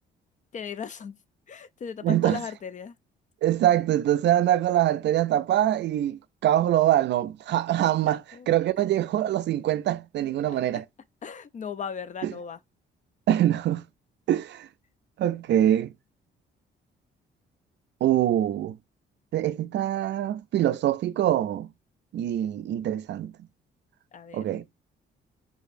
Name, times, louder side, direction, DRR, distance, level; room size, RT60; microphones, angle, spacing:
voice 1, 0.5-1.2 1.5-2.9 8.0-8.5 10.5-10.8 11.2-12.6 24.1-24.4, left 6 dB, 40° left, 0.4 m, -37 dB
voice 2, 2.0-2.4 3.4-8.2 8.5-10.8 12.2-12.3 13.3-13.8 14.3-14.7 15.2-15.9 18.0-18.8 19.3-21.7 22.1-23.3 24.3-24.6, right 12 dB, 60° right, 0.4 m, -24 dB
4.7 x 2.6 x 2.6 m
cardioid pair, 90°, 20 cm